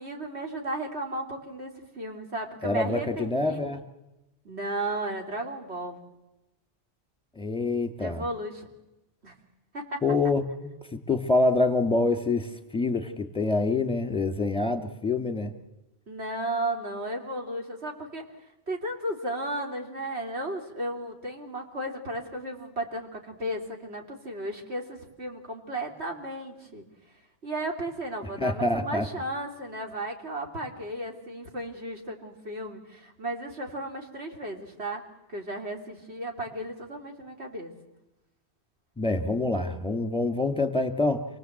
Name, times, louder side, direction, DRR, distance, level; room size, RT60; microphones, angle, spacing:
voice 1, 0.0-3.6 4.4-6.0 8.0-8.7 9.2-9.3 9.7-10.0 16.1-18.2 18.7-26.8 27.4-35.0 35.3-37.7, right 1 dB, 70° right, 2 dB, 3.2 m, -34 dB
voice 2, 2.6-3.8 7.4-8.2 10.0-15.5 28.4-29.1 39.0-41.3, left 2 dB, 5° left, 7 dB, 2.0 m, -26 dB
28.0 x 18.5 x 7.9 m, 0.99 s
omnidirectional pair, 1.1 m